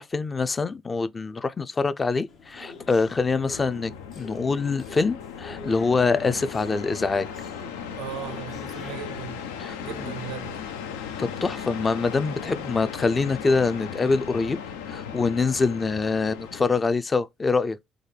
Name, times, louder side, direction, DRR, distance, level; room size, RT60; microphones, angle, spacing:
voice 1, 0.0-7.3 9.6-9.8 11.2-14.6 14.9-17.8, left 4 dB, 30° left, 0.4 m, -25 dB
sound 1, 2.3-11.4, left 3 dB, 65° left, 0.9 m, -47 dB
sound 2, 2.4-16.8, left 7 dB, 90° left, 0.4 m, -37 dB
voice 2, 8.0-9.4 9.8-10.6, right 11 dB, 80° right, 0.5 m, -37 dB
3.8 x 2.2 x 3.2 m
hypercardioid pair, 60°, 0 cm